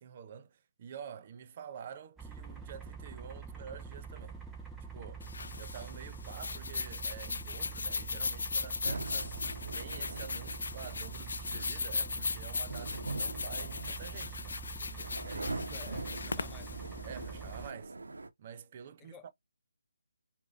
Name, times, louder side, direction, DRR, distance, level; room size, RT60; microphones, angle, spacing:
voice 1, 0.0-4.4 4.9-5.3 5.6-9.4 9.7-15.6 17.0-17.9 18.4-19.3, right 7 dB, 35° right, 0.7 m, -48 dB
sound 1, 2.2-17.7, right 5 dB, 5° right, 0.9 m, -45 dB
sound 2, 5.2-17.7, left 4 dB, 65° left, 0.4 m, -38 dB
sound 3, 8.8-18.3, right 3 dB, 75° right, 0.9 m, -43 dB
voice 2, 15.7-16.8 19.0-19.3, left 9 dB, 15° left, 0.5 m, -53 dB
4.8 x 2.7 x 2.4 m
figure-of-eight pair, 155°, 0 cm